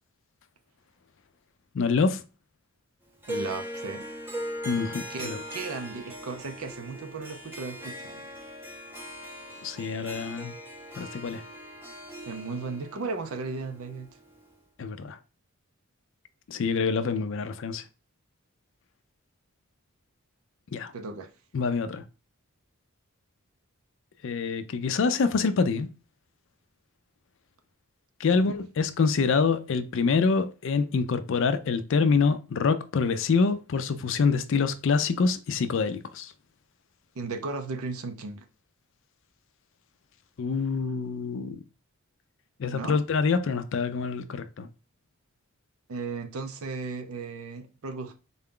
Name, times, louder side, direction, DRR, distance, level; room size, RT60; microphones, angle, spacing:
voice 1, 1.7-2.2 4.6-5.4 9.6-10.5 11.0-11.4 14.8-15.2 16.5-17.8 20.7-20.9 21.5-22.0 24.2-25.9 28.2-36.3 40.4-41.6 42.6-44.7, left 5 dB, 60° left, 0.4 m, -26 dB
Harp, 3.2-14.5, equal, 10° right, 0.6 m, -40 dB
voice 2, 3.3-4.0 5.1-8.2 12.3-14.1 20.9-21.3 28.3-28.5 37.1-38.5 42.7-43.0 45.9-48.1, right 4 dB, 75° right, 0.5 m, -35 dB
3.8 x 2.2 x 3.7 m
head